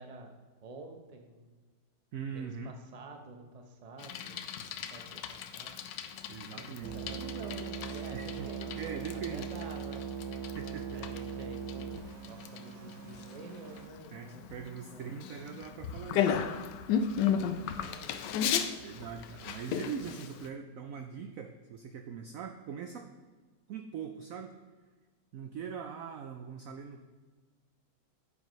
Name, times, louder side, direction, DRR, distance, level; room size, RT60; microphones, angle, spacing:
voice 1, 0.0-1.6 2.3-5.8 6.5-10.0 10.9-15.2 16.9-18.4, right 3 dB, 30° right, 4 dB, 0.8 m, -50 dB
voice 2, 2.1-2.7 6.3-7.2 8.1-8.5 8.8-9.5 10.6-11.1 14.1-16.4 18.8-23.1 23.7-24.6 25.3-27.0, right 7 dB, 65° right, 5 dB, 0.8 m, -42 dB
Bicycle, 4.0-20.5, left 8 dB, 80° left, 1.2 m, -36 dB
sound 1, 6.8-13.9, right 7 dB, 85° right, 1.5 m, -40 dB
9.3 x 8.5 x 3.1 m, 1.4 s
omnidirectional pair, 1.9 m